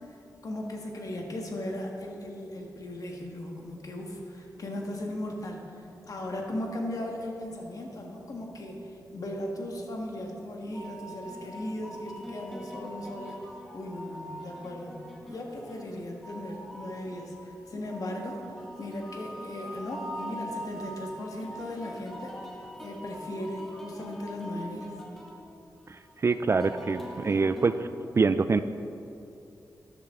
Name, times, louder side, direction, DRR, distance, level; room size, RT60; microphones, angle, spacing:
voice 1, 0.4-13.4 13.7-15.0 15.3-22.4 22.8-24.9, left 1 dB, 55° left, 1 dB, 1.6 m, -37 dB
sound 1, 10.7-27.8, equal, 5° left, 1.9 m, -43 dB
voice 2, 26.2-27.9 28.2-28.6, right 4 dB, 40° right, 12 dB, 0.3 m, -24 dB
13.0 x 10.5 x 3.7 m, 2.7 s
wide cardioid pair, 110°, 7 cm